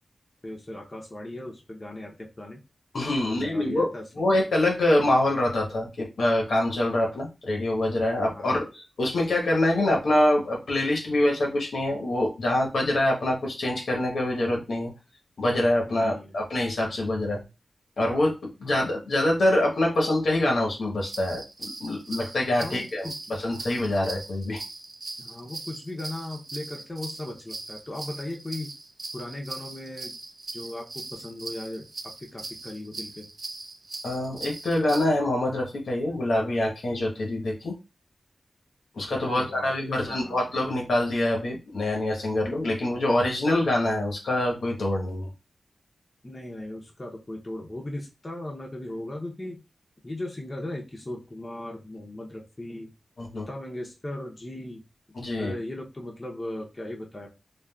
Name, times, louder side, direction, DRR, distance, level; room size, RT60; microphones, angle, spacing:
voice 1, 0.4-2.6 3.2-4.5 8.3-8.6 15.9-16.3 18.6-18.8 22.6-23.4 25.2-28.7 29.1-30.1 30.5-31.9 32.2-33.3 39.1-40.5 46.2-49.6 50.0-52.9 53.3-54.8 55.4-57.3, left 1 dB, 25° left, -1 dB, 0.6 m, -37 dB
voice 2, 2.9-3.9 4.1-14.9 15.4-17.4 18.0-24.6 34.0-37.8 38.9-45.3 53.2-53.5 55.1-55.5, left 1 dB, 80° left, 0 dB, 0.9 m, -25 dB
sound 1, 21.0-35.1, right 2 dB, 45° right, 0.5 m, -40 dB
3.6 x 2.3 x 2.2 m, 0.27 s
wide cardioid pair, 100°, 0 cm